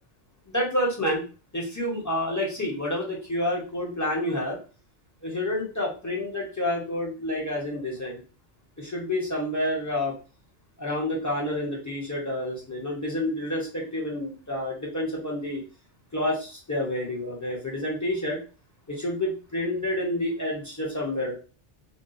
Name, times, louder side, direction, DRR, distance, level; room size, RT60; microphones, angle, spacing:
voice 1, 0.5-1.2 1.5-4.6 5.2-8.2 8.8-10.1 10.8-15.6 16.1-18.4 18.9-21.3, left 1 dB, 15° left, -3 dB, 0.9 m, -29 dB
3.9 x 2.3 x 2.5 m, 0.35 s
omnidirectional pair, 1.2 m